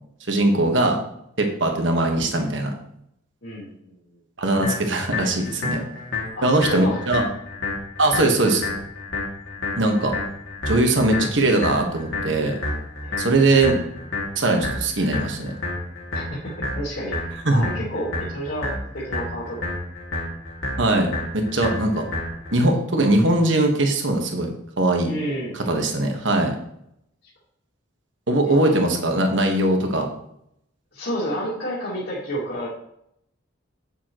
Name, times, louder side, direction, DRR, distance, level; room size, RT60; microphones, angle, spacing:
voice 1, 0.3-1.0 1.4-2.7 4.4-5.8 6.4-7.2 8.0-8.7 9.8-10.1 10.7-12.5 13.2-13.8 14.4-15.5 17.4-17.6 20.8-22.0 22.5-24.5 24.8-25.1 25.7-26.5 28.3-30.1, right 2 dB, 65° right, 3 dB, 1.4 m, -20 dB
voice 2, 3.4-4.0 6.4-7.0 13.0-13.2 16.1-19.7 25.0-25.6 28.4-28.8 30.9-32.7, equal, 60° left, -7 dB, 2.2 m, -30 dB
sound 1, 4.6-22.6, left 2 dB, 80° left, 2.2 m, -30 dB
9.0 x 6.8 x 3.0 m, 0.74 s
head